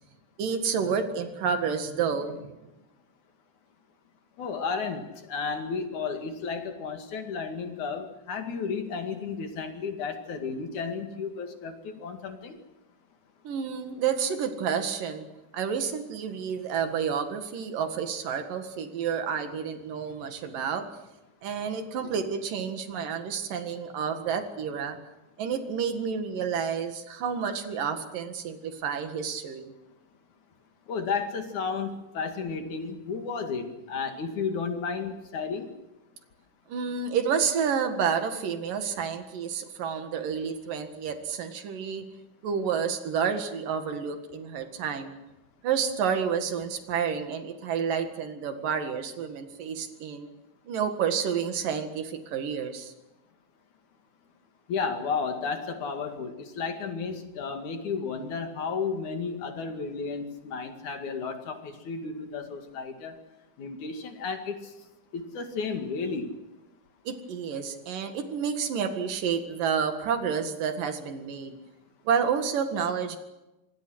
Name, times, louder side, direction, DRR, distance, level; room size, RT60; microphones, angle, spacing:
voice 1, 0.4-2.5 13.4-15.3 15.5-20.8 21.4-25.0 25.4-29.7 36.7-42.0 42.4-45.1 45.6-50.3 50.6-52.9 67.0-71.6 72.0-73.2, right 7 dB, 75° right, 7 dB, 3.5 m, -30 dB
voice 2, 4.4-12.6 30.9-35.7 54.7-63.2 63.6-64.7 65.1-66.4, left 5 dB, 60° left, 6 dB, 3.5 m, -33 dB
26.5 x 22.0 x 6.4 m, 1.0 s
omnidirectional pair, 3.9 m